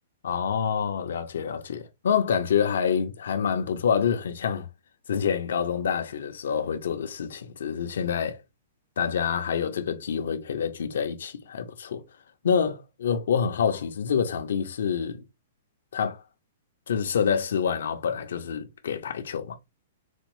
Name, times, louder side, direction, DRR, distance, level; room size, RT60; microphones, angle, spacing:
voice 1, 0.2-4.7 5.1-8.4 9.0-12.0 12.4-15.2 15.9-16.2 16.9-19.5, left 7 dB, 75° left, 0.7 m, -27 dB
4.2 x 2.0 x 3.0 m
hypercardioid pair, 170°, 0 cm